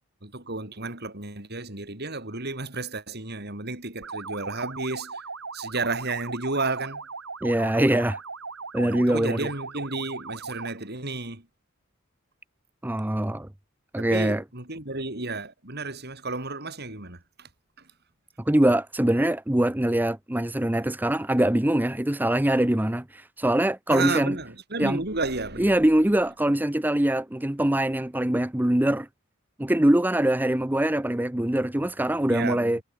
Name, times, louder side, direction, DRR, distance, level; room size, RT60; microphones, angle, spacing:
voice 1, 0.2-5.2 5.5-7.0 8.8-11.4 14.0-17.5 23.9-25.7 32.3-32.7, right 3 dB, 50° right, 5.3 m, -32 dB
sound 1, 4.0-10.8, right 4 dB, 80° right, 3.9 m, -38 dB
voice 2, 7.4-8.2 8.7-9.5 12.8-13.5 13.9-14.4 18.5-24.4 24.8-25.0 25.6-29.1 29.6-32.8, right 1 dB, 10° right, 0.6 m, -23 dB
head